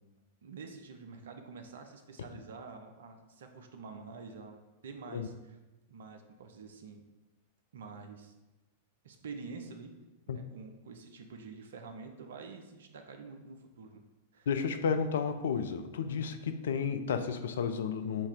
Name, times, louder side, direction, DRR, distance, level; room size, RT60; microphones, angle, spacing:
voice 1, 0.4-4.6 4.8-5.6 5.9-7.0 7.7-8.3 9.0-9.9 10.3-14.0 14.3-14.5 16.1-16.3, right 4 dB, 65° right, 5 dB, 0.5 m, -47 dB
voice 2, 14.5-18.3, left 6 dB, 65° left, 8 dB, 0.3 m, -32 dB
3.5 x 2.7 x 4.5 m, 1.1 s
figure-of-eight pair, 95°, 0 cm